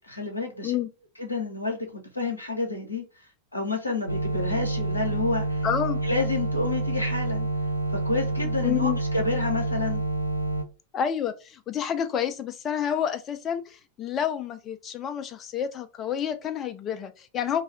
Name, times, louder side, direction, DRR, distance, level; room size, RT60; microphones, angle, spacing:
voice 1, 0.1-0.8 1.2-3.0 3.5-5.6 6.0-7.5 7.9-10.0, left 3 dB, 80° left, 0.7 m, -29 dB
sound 1, 4.1-10.6, right 2 dB, 85° right, 0.3 m, -28 dB
voice 2, 5.6-6.0 8.6-9.0 10.9-17.6, left 9 dB, 30° left, 0.4 m, -29 dB
2.6 x 2.3 x 3.9 m
figure-of-eight pair, 90°, 0 cm